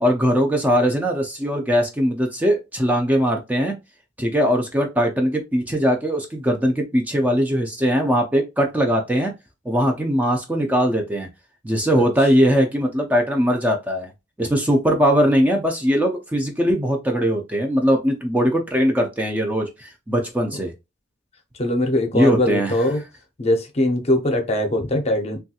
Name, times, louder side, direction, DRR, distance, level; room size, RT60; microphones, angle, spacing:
voice 1, 0.0-3.8 4.2-9.3 9.7-11.3 11.6-14.1 14.4-20.7 22.1-22.7, equal, 10° right, 0.4 m, -20 dB
voice 2, 21.6-23.0 23.4-25.4, left 1 dB, 35° left, 0.6 m, -21 dB
3.1 x 2.3 x 2.7 m
head